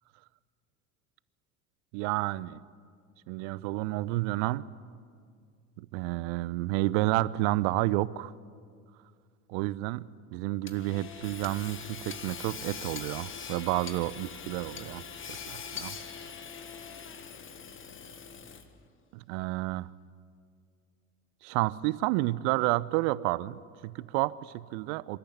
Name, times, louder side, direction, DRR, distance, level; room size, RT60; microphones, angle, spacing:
voice 1, 1.9-2.6 3.3-4.7 5.8-8.3 9.5-15.0 15.3-16.0 19.1-19.9 21.4-25.2, right 18 dB, 55° right, 19 dB, 0.7 m, -30 dB
Hammer / Sawing, 10.7-18.8, left 6 dB, 30° left, 1.6 m, -42 dB
26.5 x 13.5 x 9.7 m, 2.2 s
figure-of-eight pair, 75°, 42 cm